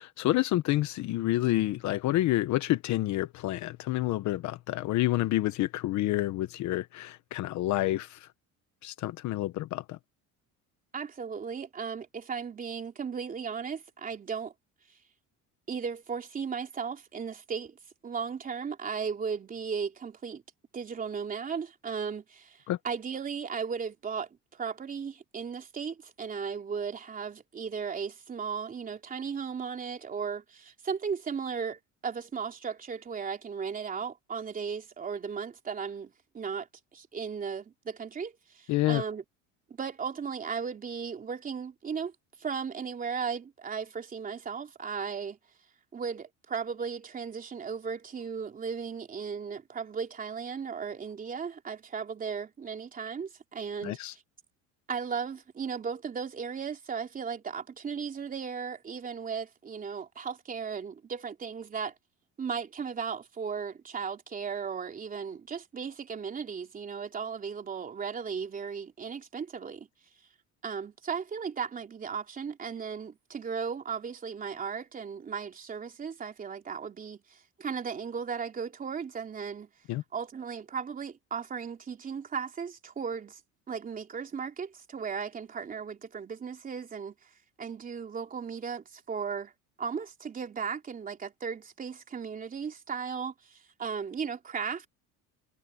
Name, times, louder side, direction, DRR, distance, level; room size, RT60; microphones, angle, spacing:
voice 1, 0.0-8.3 8.8-10.0 22.7-22.8 38.7-39.0 53.8-54.1 79.9-80.0, left 16 dB, 55° left, 1.1 m, -28 dB
voice 2, 10.9-14.5 15.7-17.8 18.0-20.4 20.7-36.7 36.9-39.2 39.8-42.1 42.4-45.4 45.9-54.0 54.9-61.9 62.4-69.9 70.6-79.7 80.1-83.4 83.7-87.1 87.6-89.5 89.8-94.9, right 6 dB, 25° right, 3.3 m, -36 dB
cardioid pair, 150°, 33 cm